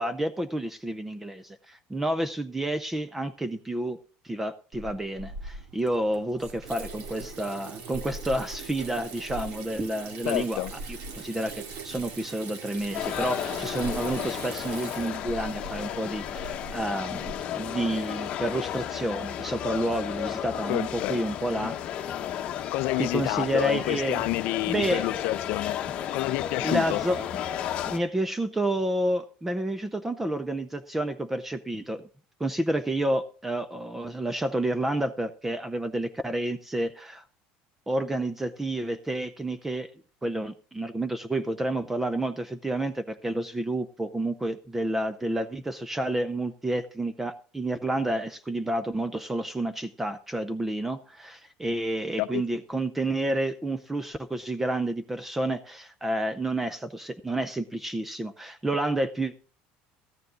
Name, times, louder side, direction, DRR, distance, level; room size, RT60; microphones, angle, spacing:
voice 1, 0.0-4.0 4.2-21.7 23.0-24.3 24.7-25.1 26.6-27.3 27.8-32.0 32.4-37.2 37.9-39.9 40.2-59.4, right 1 dB, 5° right, 0.4 m, -30 dB
Water tap faucet / Sink (filling or washing), 4.7-17.4, right 3 dB, 60° right, 2.1 m, -41 dB
voice 2, 10.3-10.7 20.7-21.2 21.6-21.7 22.7-25.8 26.1-27.0 52.2-52.4, left 18 dB, 55° left, 0.5 m, -29 dB
sound 1, 12.9-28.0, left 10 dB, 35° left, 1.0 m, -33 dB
13.5 x 9.5 x 3.7 m
cardioid pair, 175°, 3 cm